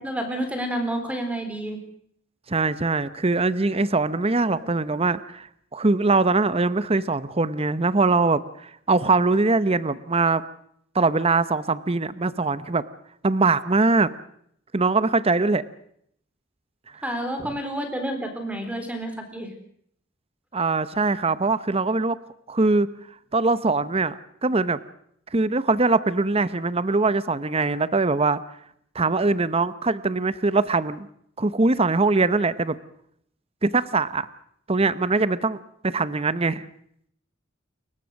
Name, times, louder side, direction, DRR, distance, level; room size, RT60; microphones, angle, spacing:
voice 1, 0.0-1.8 4.4-4.7 17.0-19.5, right 1 dB, 5° right, 6 dB, 4.0 m, -30 dB
voice 2, 2.5-5.5 5.7-10.4 10.9-12.8 13.2-14.1 14.7-15.6 16.9-17.0 17.4-17.5 20.5-22.2 22.5-22.9 23.3-24.8 25.3-28.4 28.9-31.1 31.4-32.8 33.6-34.3 34.7-35.6 35.8-36.6, right 3 dB, 30° right, 15 dB, 0.8 m, -22 dB
29.0 x 15.5 x 6.5 m, 0.69 s
head